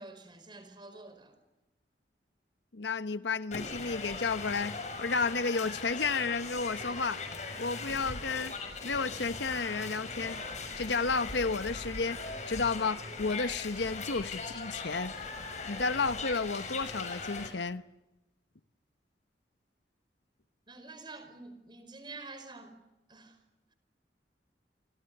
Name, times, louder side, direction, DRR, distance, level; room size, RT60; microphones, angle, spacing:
voice 1, 0.0-1.4 20.7-22.8 23.1-23.4, right 3 dB, 25° right, 5.1 m, -48 dB
voice 2, 2.7-7.2 7.6-8.5 8.8-10.4 10.8-12.2 12.5-15.1 15.7-17.8, left 4 dB, 80° left, 1.1 m, -32 dB
sound 1, 3.5-17.5, left 4 dB, 40° left, 6.6 m, -40 dB
30.0 x 25.5 x 6.9 m
head